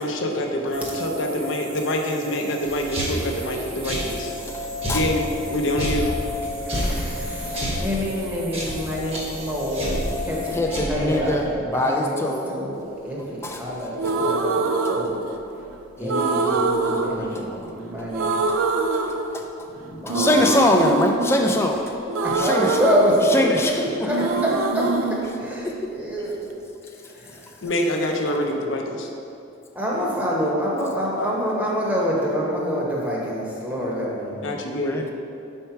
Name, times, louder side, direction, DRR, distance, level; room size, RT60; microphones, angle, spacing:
voice 1, 0.0-4.3 4.9-6.1 27.6-29.1 34.4-35.1, left 1 dB, 65° left, 2 dB, 0.6 m, -26 dB
sound 1, 0.7-10.6, left 2 dB, 60° right, 1.2 m, -34 dB
sound 2, 2.6-11.5, equal, 30° right, 1.1 m, -30 dB
voice 2, 6.7-15.2 16.0-16.5 16.8-18.4 19.8-20.7 22.2-23.5 23.8-24.9 25.4-26.4 29.8-34.3, equal, 10° right, -5 dB, 0.9 m, -26 dB
voice 3, 10.5-12.5 13.4-13.6 16.0-17.7 19.3-19.4 20.1-21.8 22.3-22.8 23.3-23.8 25.8-25.9 34.6-35.1, left 1 dB, 10° left, 2 dB, 0.4 m, -23 dB
sound 3, 14.0-15.6 16.1-17.8 18.1-19.7 20.1-23.8 24.1-26.1, right 3 dB, 80° right, 0.4 m, -24 dB
4.5 x 4.4 x 5.7 m, 2.7 s
head